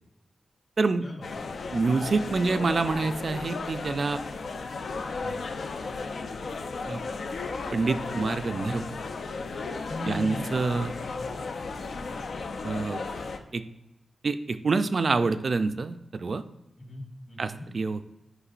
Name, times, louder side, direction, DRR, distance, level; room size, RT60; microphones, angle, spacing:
voice 1, 0.8-1.1 1.7-4.2 5.2-5.5 6.9-7.0 7.7-8.9 10.0-10.9 12.6-13.0 13.5-13.6 14.2-16.4 17.4-18.0, right 4 dB, 55° right, 10 dB, 0.4 m, -27 dB
sound 1, 1.2-13.4, left 4 dB, 70° left, 0.6 m, -35 dB
voice 2, 9.9-10.5 10.9-11.4 11.9-12.2 16.8-17.7, left 2 dB, 40° left, -1 dB, 2.2 m, -39 dB
9.8 x 5.4 x 2.5 m, 0.96 s
wide cardioid pair, 100°, 0 cm